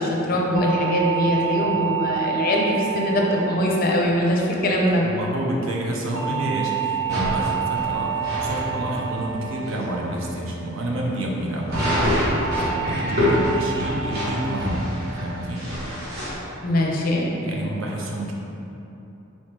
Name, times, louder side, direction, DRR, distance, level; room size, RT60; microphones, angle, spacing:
voice 1, 0.0-5.0 16.6-17.3, left 1 dB, 45° left, -1 dB, 0.5 m, -22 dB
sound 1, 0.6-5.0 6.2-10.6 11.8-12.1 12.5-12.9 13.3-13.7 14.1-14.5 14.9-15.3 15.7-16.1, right 9 dB, 30° right, 0.5 m, -29 dB
voice 2, 5.0-12.0 12.6-14.9 15.2-15.7 17.4-18.3, right 1 dB, 70° right, -2 dB, 0.6 m, -28 dB
sound 2, 7.1-8.6 9.2-9.3 9.7-9.8 10.2-10.3 11.7-16.4, left 1 dB, 50° right, 1.2 m, -26 dB
4.2 x 2.9 x 3.2 m, 2.9 s
head